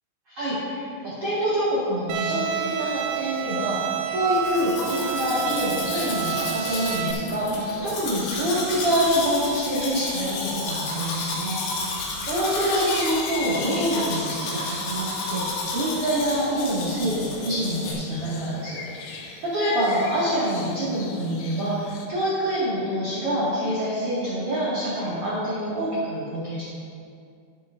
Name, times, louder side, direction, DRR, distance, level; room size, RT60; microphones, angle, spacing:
voice 1, 0.3-11.9 12.2-26.7, equal, 45° right, -11 dB, 2.2 m, -26 dB
Bowed string instrument, 2.1-7.1, right 8 dB, 85° right, 2.9 m, -29 dB
Domestic sounds home sounds, 4.3-17.9, left 2 dB, 65° left, 3.4 m, -31 dB
sound 1, 4.4-22.1, left 6 dB, 85° left, 2.0 m, -41 dB
11.0 x 10.5 x 2.6 m, 2.3 s
omnidirectional pair, 5.0 m